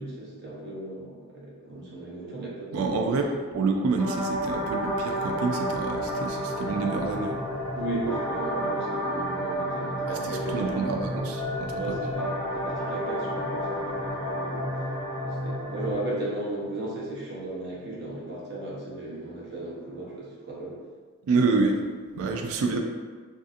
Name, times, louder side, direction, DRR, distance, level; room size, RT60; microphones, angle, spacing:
voice 1, 0.0-3.1 7.7-10.9 11.7-14.7 15.2-20.8 22.2-22.5, right 2 dB, 50° right, -5 dB, 0.7 m, -35 dB
voice 2, 2.7-3.3 3.5-7.4 10.1-12.0 21.2-21.8 22.2-22.8, right 4 dB, 70° right, 3 dB, 0.3 m, -27 dB
sound 1, 4.0-15.9, equal, 5° right, 0.6 m, -31 dB
2.6 x 2.4 x 2.5 m, 1.5 s
head